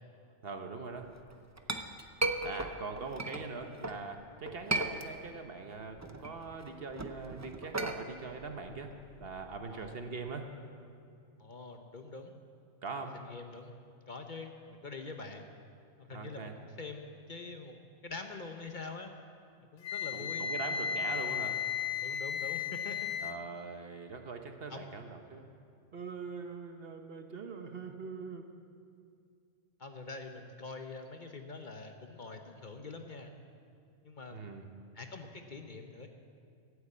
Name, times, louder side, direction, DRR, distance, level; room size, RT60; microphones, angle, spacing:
voice 1, 0.4-1.1 2.4-8.9 9.2-10.5 12.8-13.2 16.1-16.7 20.1-21.6 23.2-25.4 25.9-28.4 34.3-34.7, right 4 dB, 55° right, 5 dB, 1.1 m, -42 dB
Chink clink, 1.2-4.0 4.5-5.5 5.8-9.9, right 2 dB, 25° right, 0.4 m, -37 dB
voice 2, 11.4-12.4 12.9-13.7 14.1-15.5 16.0-19.1 19.7-20.5 22.0-23.1 24.7-24.9 29.8-33.3 34.0-34.6 34.9-36.1, left 3 dB, 45° left, 5 dB, 0.9 m, -45 dB
Wind instrument woodwind instrument, 19.8-23.3, left 8 dB, 90° left, 1.2 m, -35 dB
14.5 x 8.2 x 8.5 m, 2.4 s
omnidirectional pair, 1.3 m